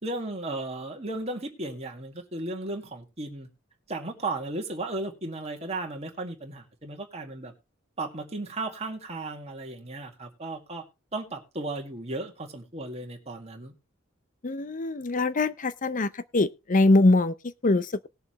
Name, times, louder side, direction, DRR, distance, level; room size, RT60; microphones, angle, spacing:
voice 1, 0.0-3.5 3.9-7.5 8.0-10.8 11.1-13.7, right 2 dB, 30° right, 2.0 m, -35 dB
voice 2, 14.4-18.1, left 2 dB, 40° left, 0.6 m, -23 dB
19.0 x 6.9 x 3.1 m
head